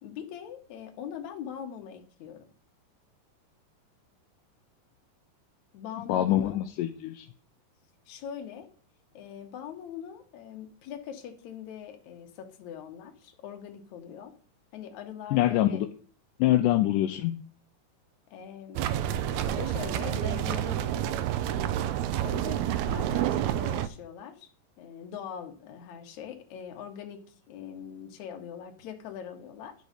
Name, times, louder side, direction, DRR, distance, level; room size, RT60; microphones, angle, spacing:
voice 1, 0.0-2.5 5.7-6.6 8.1-8.7 9.1-14.3 14.7-15.8 16.5-16.6 18.3-21.2 22.2-24.5 24.8-29.7, left 8 dB, 65° left, 5 dB, 2.3 m, -42 dB
voice 2, 6.1-7.3 15.3-15.9 16.4-17.4, left 13 dB, 80° left, 5 dB, 2.1 m, -25 dB
sound 1, 18.8-23.9, right 11 dB, 85° right, 1.6 m, -29 dB
11.0 x 3.9 x 6.5 m, 0.42 s
omnidirectional pair, 3.9 m